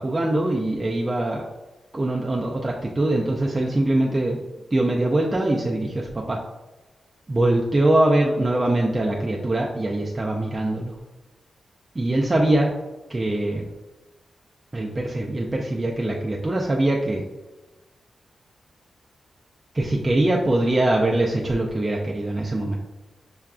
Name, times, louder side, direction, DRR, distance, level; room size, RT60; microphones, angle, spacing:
voice 1, 0.0-1.5 1.9-4.4 4.7-6.4 7.3-11.0 12.0-12.7 13.1-13.7 14.7-17.2 19.7-22.8, right 1 dB, 20° right, -2 dB, 0.3 m, -22 dB
5.5 x 2.4 x 2.3 m, 1.1 s
wide cardioid pair, 135°, 0 cm